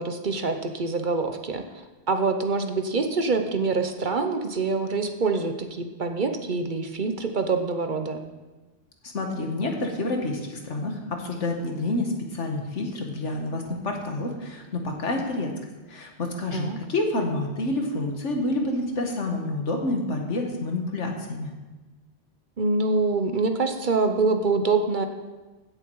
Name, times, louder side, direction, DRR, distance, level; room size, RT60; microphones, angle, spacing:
voice 1, 0.0-1.6 2.1-8.2 16.5-16.8 22.6-25.1, right 3 dB, 45° right, 6 dB, 1.0 m, -25 dB
voice 2, 9.1-15.5 15.9-21.5, left 2 dB, 85° left, 2 dB, 1.9 m, -28 dB
16.0 x 7.2 x 4.7 m, 1.2 s
omnidirectional pair, 1.2 m